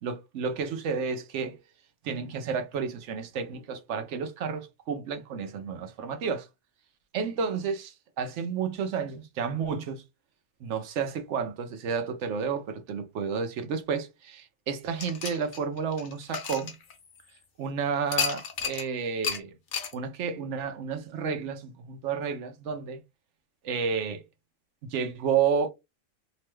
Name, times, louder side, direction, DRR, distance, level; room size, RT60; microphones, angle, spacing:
voice 1, 0.0-1.6 2.0-6.5 7.1-10.0 10.6-16.7 17.6-19.5 19.9-23.0 23.6-24.2 24.8-25.7, right 6 dB, 75° right, 0.9 m, -31 dB
sound 1, 15.0-17.4 18.1-18.9 19.2-19.4 19.7-19.9, left 6 dB, 70° left, 1.0 m, -32 dB
2.9 x 2.2 x 3.0 m
omnidirectional pair, 1.3 m